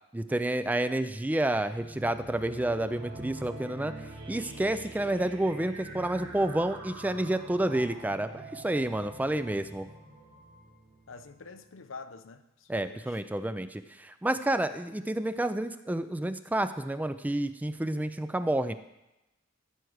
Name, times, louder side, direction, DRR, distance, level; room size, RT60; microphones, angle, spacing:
voice 1, 0.1-3.9 4.3-9.9 12.7-18.7, right 1 dB, 10° right, 0.3 m, -29 dB
sound 1, 1.5-11.7, right 2 dB, 90° right, 3.2 m, -45 dB
voice 2, 11.1-13.2, left 4 dB, 80° left, 0.7 m, -47 dB
13.5 x 4.7 x 6.4 m
head